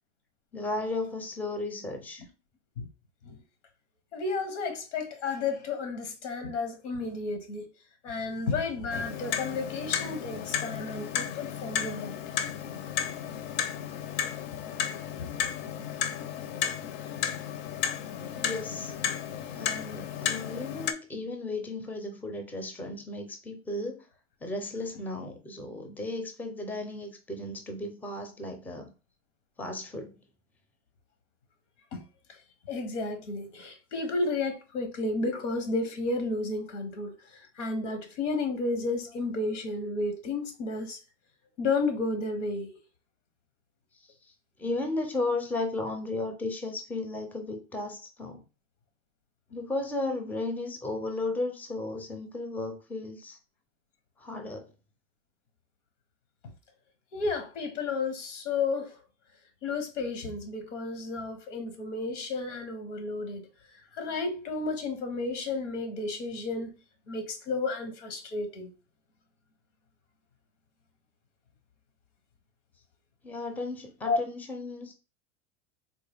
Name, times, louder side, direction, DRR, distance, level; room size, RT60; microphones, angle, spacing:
voice 1, 0.5-2.3 18.4-18.9 19.6-24.0 24.4-28.9 29.6-30.2 44.6-48.4 49.5-53.4 54.2-54.7 73.2-74.9, left 2 dB, 5° left, 0.5 m, -34 dB
voice 2, 4.1-7.7 8.0-12.2 15.2-15.3 31.9-32.0 32.7-41.0 41.6-42.8 57.1-59.0 59.6-63.5 63.9-66.7 67.1-68.7 74.0-74.2, left 3 dB, 90° left, 1.0 m, -32 dB
Clock, 8.9-20.9, left 8 dB, 60° left, 0.6 m, -33 dB
3.7 x 2.1 x 3.4 m
supercardioid pair, 120°, 35 cm